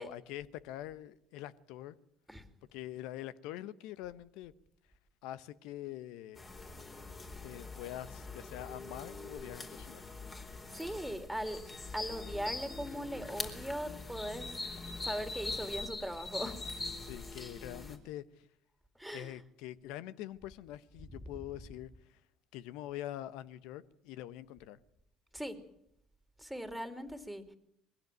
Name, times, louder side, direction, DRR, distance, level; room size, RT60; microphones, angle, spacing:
voice 1, 0.0-1.9 2.7-4.5 5.2-6.4 7.4-10.0 17.1-18.2 19.1-22.2 22.5-24.8, left 13 dB, 70° left, 1.0 m, -44 dB
sound 1, 6.4-18.0, left 3 dB, 30° left, 4.3 m, -43 dB
voice 2, 10.7-11.6 11.9-14.5 15.0-16.6 19.0-19.3 25.3-25.6 26.4-27.4, equal, 5° right, 3.0 m, -39 dB
22.0 x 16.0 x 9.3 m
hypercardioid pair, 65°, 0 cm